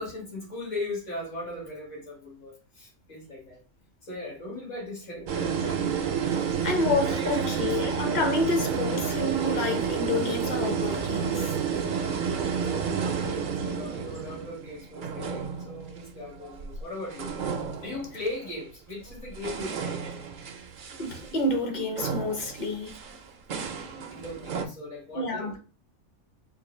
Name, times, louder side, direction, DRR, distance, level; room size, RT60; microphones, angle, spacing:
voice 1, 0.0-3.6 4.0-5.9 7.2-7.8 12.7-17.3 17.8-20.0 24.1-25.5, left 2 dB, 70° left, 1.9 m, -38 dB
sound 1, 5.3-16.8 17.1-18.5 19.1-24.7, right 6 dB, 65° right, 0.5 m, -31 dB
voice 2, 6.6-11.5 21.0-23.0 25.1-25.6, left 2 dB, 45° left, 0.7 m, -28 dB
3.8 x 2.5 x 3.0 m
omnidirectional pair, 1.3 m